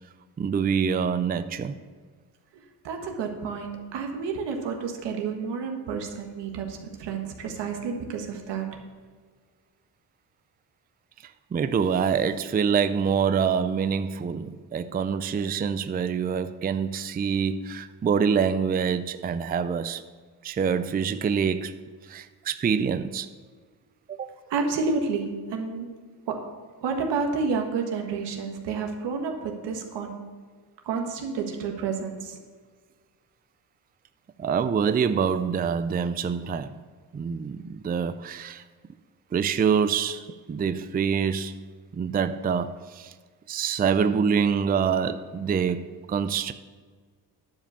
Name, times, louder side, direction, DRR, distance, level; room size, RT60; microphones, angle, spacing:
voice 1, 0.4-1.7 11.2-20.0 20.4-23.3 24.1-24.3 34.4-36.8 37.1-38.6 39.3-41.6 41.9-43.1 43.5-46.5, right 6 dB, 25° right, 0.4 m, -26 dB
voice 2, 2.5-8.8 24.5-26.0 26.3-26.4 26.8-30.2 30.8-32.4, right 5 dB, 80° right, 1.5 m, -30 dB
10.5 x 5.0 x 6.8 m
cardioid pair, 70°, 41 cm